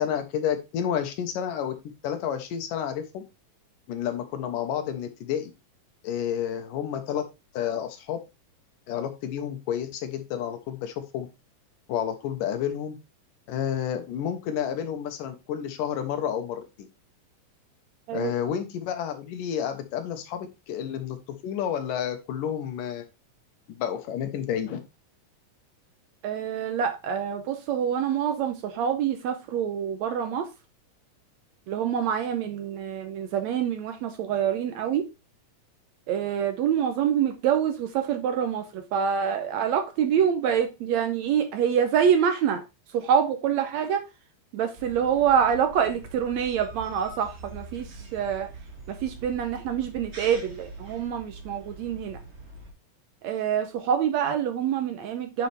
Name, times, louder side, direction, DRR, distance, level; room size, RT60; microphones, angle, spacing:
voice 1, 0.0-1.8 2.0-3.2 3.9-5.5 6.0-7.2 7.5-8.2 8.9-11.3 11.9-13.0 13.5-16.9 18.1-23.0 23.7-24.8, left 9 dB, 80° left, 7 dB, 2.8 m, -30 dB
voice 2, 26.2-30.5 31.7-35.0 36.1-42.6 42.9-44.0 44.5-48.5 48.9-52.2 53.2-55.5, right 8 dB, 70° right, 7 dB, 1.8 m, -26 dB
sound 1, 44.8-52.7, right 2 dB, 35° right, 1.0 m, -44 dB
9.4 x 5.7 x 3.4 m, 0.26 s
omnidirectional pair, 3.8 m